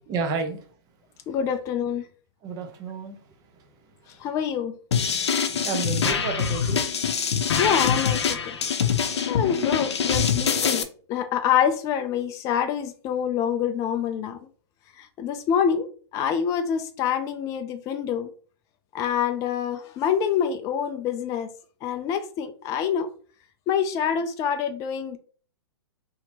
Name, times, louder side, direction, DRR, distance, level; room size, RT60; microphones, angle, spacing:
voice 1, 0.1-0.6 2.4-3.2 5.5-6.9, right 4 dB, 25° right, 0.8 m, -31 dB
voice 2, 1.3-2.1 4.2-4.7 7.6-8.6 9.1-14.4 15.0-18.3 18.9-21.5 21.8-23.1 23.7-25.2, left 8 dB, 20° left, 0.3 m, -26 dB
sound 1, 4.9-10.8, left 6 dB, 70° left, 0.6 m, -24 dB
4.2 x 2.8 x 2.9 m
hypercardioid pair, 125°, 15 cm